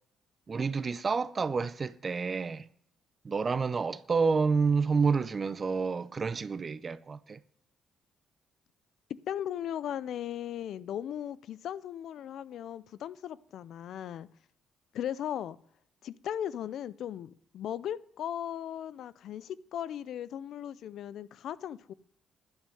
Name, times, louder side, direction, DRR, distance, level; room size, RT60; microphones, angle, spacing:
voice 1, 0.5-2.7 3.2-7.4, right 5 dB, 35° right, 0.6 m, -29 dB
voice 2, 9.3-14.3 14.9-15.6 16.0-21.9, left 10 dB, 75° left, 0.5 m, -37 dB
11.5 x 6.4 x 9.1 m
cardioid pair, 90°, 0 cm